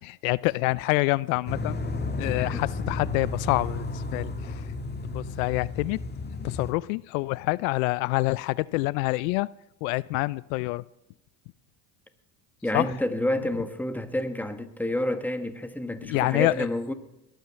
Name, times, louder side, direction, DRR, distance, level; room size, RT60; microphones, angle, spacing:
voice 1, 0.0-1.8 2.2-4.7 5.0-6.0 6.4-9.5 9.8-10.8 12.7-12.9 16.0-16.7, left 22 dB, 75° left, 0.5 m, -27 dB
sound 1, 1.5-6.7, left 3 dB, 25° left, 1.8 m, -32 dB
voice 2, 12.6-16.9, left 1 dB, 5° left, 1.6 m, -29 dB
21.0 x 9.2 x 7.5 m
supercardioid pair, 80°, 41 cm